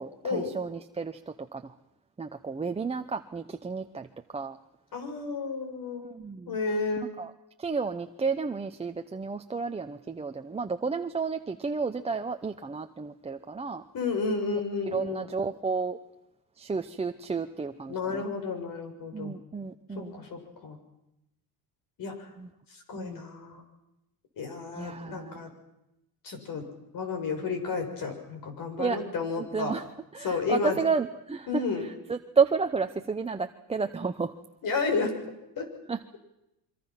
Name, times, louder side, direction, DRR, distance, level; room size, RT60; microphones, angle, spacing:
voice 1, 0.0-1.7 2.2-4.1 4.3-4.6 6.0-6.6 7.2-7.3 7.6-13.8 14.9-16.0 16.6-18.3 19.1-20.2 22.4-22.5 23.0-23.2 24.8-25.4 28.8-29.0 29.4-29.8 30.1-34.3 35.9-36.0, right 5 dB, 15° right, 6 dB, 0.8 m, -31 dB
voice 2, 4.9-6.0 6.5-7.1 13.9-15.3 17.9-19.3 19.9-20.8 22.0-22.3 22.7-23.6 24.4-25.5 26.2-26.7 26.9-29.7 30.2-30.8 31.5-31.9 34.6-35.2 35.6-35.7, left 4 dB, 50° left, 5 dB, 6.7 m, -32 dB
27.0 x 24.0 x 6.0 m, 0.89 s
cardioid pair, 110°, 41 cm